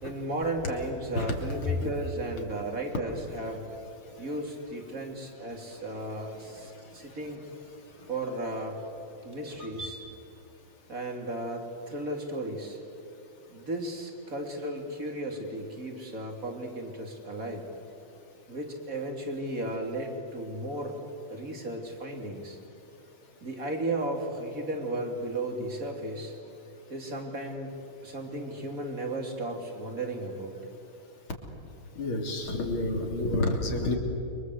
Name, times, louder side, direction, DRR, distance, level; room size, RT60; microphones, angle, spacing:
voice 1, 0.0-3.6 4.2-7.4 8.1-8.8 9.2-10.0 10.9-12.8 13.5-17.6 18.5-21.0 21.3-22.6 23.4-26.3 26.9-27.7 28.0-30.5, right 1 dB, 40° right, 2 dB, 3.8 m, -35 dB
sound 1, 1.2-9.9, left 2 dB, 25° right, 4.3 m, -42 dB
voice 2, 6.4-7.2 31.9-34.0, left 2 dB, 90° left, 2 dB, 4.0 m, -30 dB
29.5 x 24.5 x 8.2 m, 2.8 s
omnidirectional pair, 2.2 m